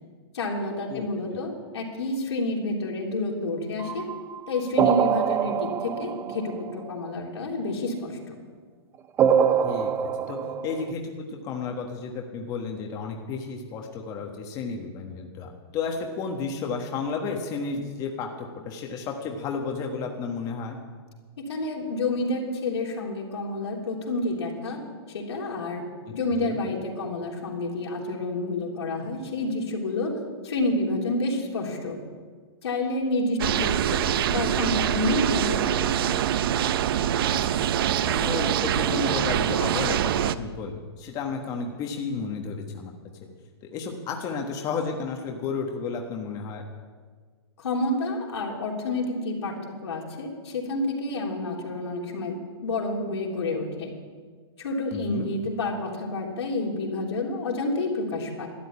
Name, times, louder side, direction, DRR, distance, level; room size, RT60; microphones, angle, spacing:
voice 1, 0.3-4.1 4.5-8.4 21.4-24.8 25.1-25.8 26.1-30.1 30.4-32.0 32.6-36.3 47.6-53.9 54.6-58.5, left 2 dB, 80° left, -1 dB, 3.4 m, -29 dB
voice 2, 0.9-1.4 9.6-10.4 10.6-20.8 26.3-26.6 38.0-42.9 43.7-46.6 54.9-55.3, left 5 dB, 25° left, 2 dB, 1.3 m, -32 dB
sound 1, 3.8-7.1 9.2-10.9, right 8 dB, 15° right, 0.5 m, -24 dB
sound 2, 33.4-40.3, right 10 dB, 55° right, 0.6 m, -24 dB
13.0 x 8.2 x 9.6 m, 1.5 s
hypercardioid pair, 145°, 14 cm